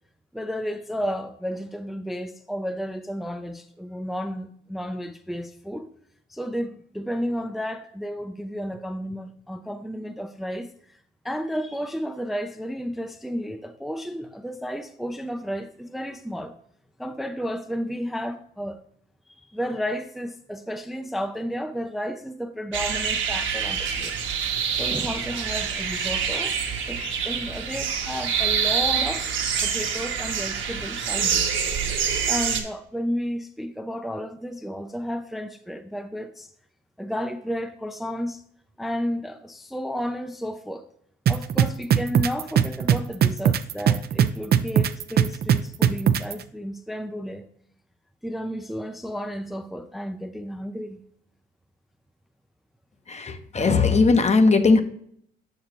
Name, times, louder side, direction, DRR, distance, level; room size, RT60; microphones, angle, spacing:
voice 1, 0.3-5.9 6.3-11.0 11.2-16.6 17.0-18.8 19.3-24.1 24.7-26.6 26.9-29.3 29.6-31.8 32.3-36.5 37.0-38.4 38.8-40.8 41.3-47.5 48.2-51.0, equal, ahead, 0.5 m, -32 dB
sound 1, 22.7-32.6, right 7 dB, 70° right, 1.3 m, -26 dB
sound 2, 41.3-46.3, right 9 dB, 55° right, 0.5 m, -19 dB
voice 2, 53.1-54.8, left 4 dB, 35° left, 0.8 m, -18 dB
6.9 x 6.5 x 2.9 m
cardioid pair, 90°, 20 cm